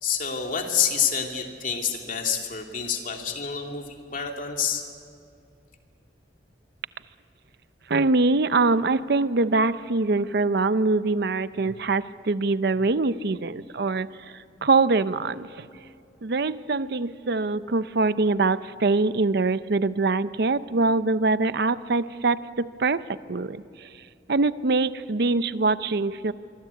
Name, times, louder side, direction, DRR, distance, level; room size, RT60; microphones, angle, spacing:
voice 1, 0.0-4.8, left 7 dB, 50° left, 2 dB, 2.8 m, -28 dB
voice 2, 7.9-15.7 16.2-23.0 23.3-23.9 24.3-26.3, right 3 dB, 60° right, 14 dB, 0.7 m, -24 dB
25.5 x 24.5 x 8.4 m, 2.4 s
head